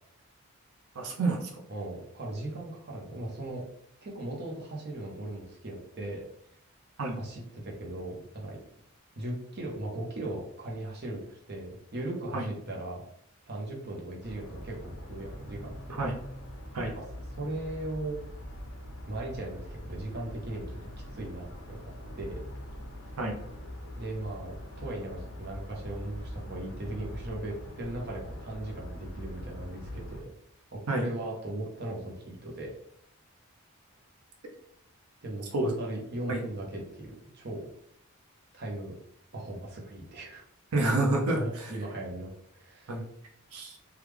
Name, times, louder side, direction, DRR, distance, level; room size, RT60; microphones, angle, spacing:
voice 1, 1.0-1.5 7.0-7.2 12.3-12.5 16.0-16.1 16.7-16.9 23.2-23.3 30.9-31.1 35.5-35.7 36.3-36.4 40.7-41.4 42.9-43.0 43.5-43.8, right 2 dB, 80° right, 0 dB, 0.6 m, -28 dB
voice 2, 1.7-3.6 4.0-6.2 7.2-8.6 9.2-13.0 13.4-16.0 16.9-17.0 17.3-18.2 19.1-20.8 21.1-22.4 24.0-30.3 30.7-32.7 35.2-37.6 38.5-38.9 39.3-40.4 41.3-43.0, right 1 dB, 45° right, -1 dB, 0.7 m, -38 dB
sound 1, 14.2-30.2, equal, 60° left, 0.7 m, -43 dB
3.2 x 2.3 x 3.4 m, 0.70 s
head